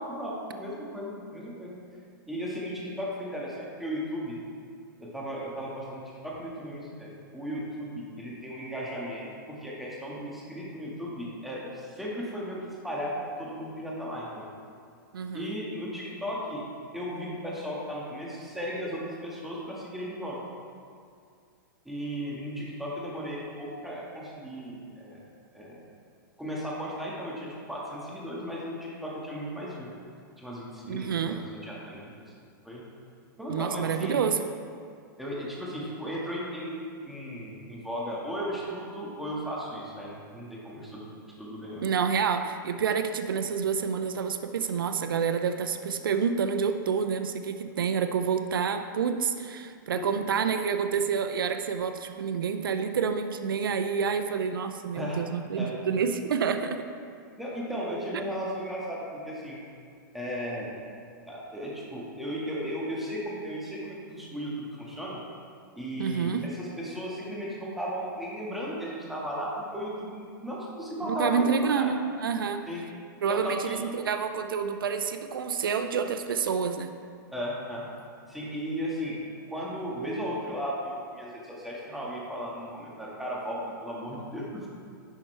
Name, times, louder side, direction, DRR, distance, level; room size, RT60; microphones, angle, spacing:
voice 1, 0.0-1.8 2.3-4.4 5.0-14.5 15.3-16.6 16.9-20.4 21.8-25.2 25.5-25.8 26.4-29.9 30.4-32.1 32.6-32.8 33.4-34.2 35.2-36.8 37.0-41.1 41.4-41.8 49.9-50.1 54.9-55.2 55.6-55.7 57.4-59.6 60.1-60.7 61.3-65.2 65.7-71.9 72.7-72.8 73.3-73.8 77.3-77.9 78.3-79.2 79.5-84.7, equal, ahead, -5 dB, 1.7 m, -35 dB
voice 2, 15.1-15.6 30.9-31.4 33.5-34.4 41.8-56.8 66.0-66.4 71.0-72.6 73.2-76.9, right 6 dB, 90° right, 8 dB, 0.5 m, -28 dB
10.5 x 5.8 x 3.3 m, 2.3 s
hypercardioid pair, 130°, 11 cm